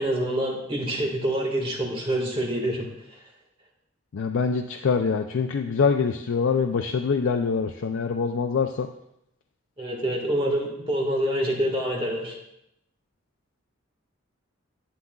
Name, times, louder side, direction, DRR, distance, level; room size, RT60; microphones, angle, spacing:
voice 1, 0.0-2.9 9.8-12.4, right 1 dB, 25° right, -1 dB, 1.7 m, -26 dB
voice 2, 4.1-8.9, left 5 dB, 70° left, 5 dB, 0.4 m, -24 dB
11.5 x 8.6 x 2.3 m, 0.80 s
head